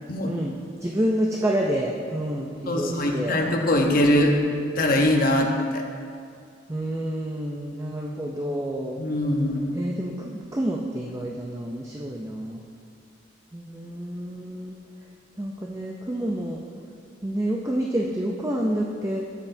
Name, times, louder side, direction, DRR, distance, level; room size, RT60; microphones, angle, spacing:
voice 1, 0.2-0.6 0.8-3.4 6.7-9.0 9.7-12.6 13.5-14.8 15.4-16.6 17.2-19.2, right 1 dB, 15° right, -1 dB, 0.5 m, -28 dB
voice 2, 2.7-4.4 4.8-5.8 9.0-9.8, left 1 dB, 45° left, 2 dB, 0.9 m, -22 dB
13.0 x 7.6 x 2.7 m, 2.3 s
head